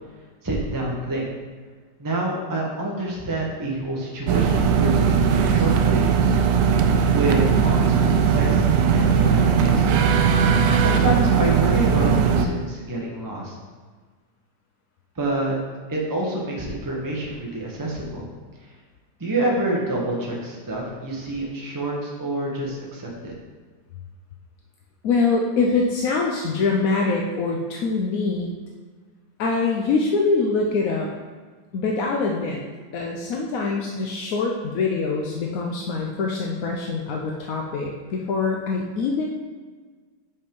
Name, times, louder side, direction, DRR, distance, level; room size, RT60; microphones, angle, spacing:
voice 1, 0.4-1.3 2.0-6.3 7.1-8.6 8.9-9.9 10.8-13.5 15.2-15.6 15.9-18.3 19.2-23.3, right 2 dB, 15° right, -3 dB, 0.9 m, -27 dB
sound 1, 4.3-12.5, right 6 dB, 70° right, 1.1 m, -19 dB
voice 2, 25.0-28.5 29.4-31.1 31.7-32.6 32.9-39.3, left 4 dB, 65° left, 0 dB, 0.9 m, -24 dB
5.6 x 5.3 x 5.3 m, 1.5 s
omnidirectional pair, 2.0 m